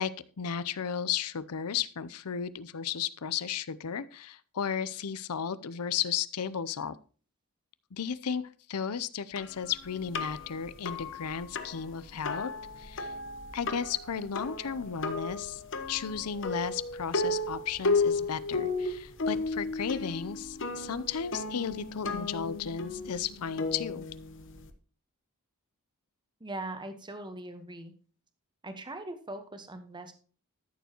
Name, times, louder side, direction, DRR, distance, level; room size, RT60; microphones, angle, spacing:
voice 1, 0.0-7.0 7.9-8.4 8.7-12.5 12.8-13.1 13.5-15.6 15.9-24.1, left 7 dB, 85° left, 16 dB, 0.6 m, -34 dB
sound 1, 9.4-24.7, left 3 dB, 60° left, 1.0 m, -34 dB
voice 2, 26.4-27.9 28.6-30.1, right 2 dB, 20° right, 8 dB, 1.1 m, -40 dB
13.5 x 7.0 x 2.9 m, 0.39 s
head